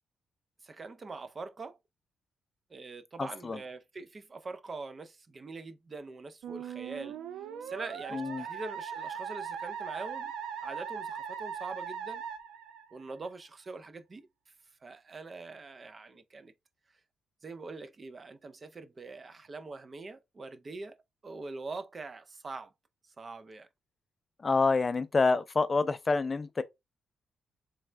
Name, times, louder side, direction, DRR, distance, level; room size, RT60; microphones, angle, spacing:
voice 1, 0.6-1.8 2.7-7.2 7.6-10.3 10.6-12.2 12.9-14.2 14.8-16.5 17.4-21.0 21.2-22.7 23.2-23.7, right 3 dB, 35° right, 0.5 m, -43 dB
voice 2, 3.2-3.6 8.1-8.4 24.4-26.6, left 4 dB, 30° left, 0.3 m, -27 dB
Musical instrument, 6.4-13.3, right 7 dB, 90° right, 0.5 m, -39 dB
3.4 x 3.3 x 3.2 m
cardioid pair, 100°, 0 cm